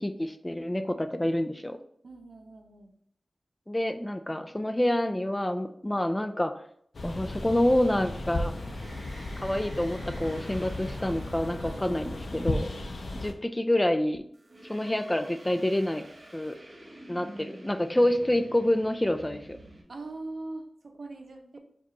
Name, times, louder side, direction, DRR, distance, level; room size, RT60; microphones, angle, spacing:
voice 1, 0.0-1.8 3.7-6.5 7.0-8.5 9.4-12.7 13.1-14.2 14.7-16.0 16.3-16.6 17.1-19.6, left 1 dB, 20° left, 7 dB, 0.4 m, -27 dB
voice 2, 2.0-2.9 11.6-12.2 19.9-21.6, right 2 dB, 75° right, 3 dB, 0.6 m, -42 dB
sound 1, 6.9-13.3, left 2 dB, 75° left, 0.5 m, -35 dB
sound 2, 8.4-12.8 14.3-19.8, right 1 dB, 55° right, 1.1 m, -49 dB
4.8 x 2.3 x 2.9 m, 0.66 s
cardioid pair, 40°, 0 cm